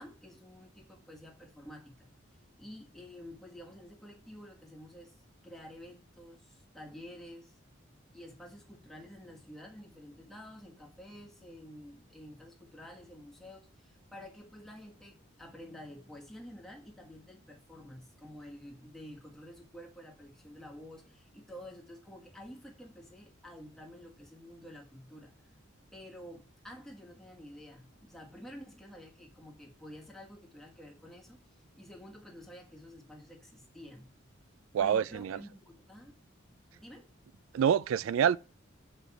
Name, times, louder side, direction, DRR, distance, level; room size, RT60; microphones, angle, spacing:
voice 1, 0.0-2.1 2.6-5.2 5.4-7.6 8.1-25.3 25.9-34.1 34.8-36.2 36.7-37.1, equal, ahead, 1.4 m, -50 dB
voice 2, 34.7-35.4 37.5-38.4, right 8 dB, 80° right, 0.3 m, -26 dB
6.6 x 5.0 x 5.8 m
head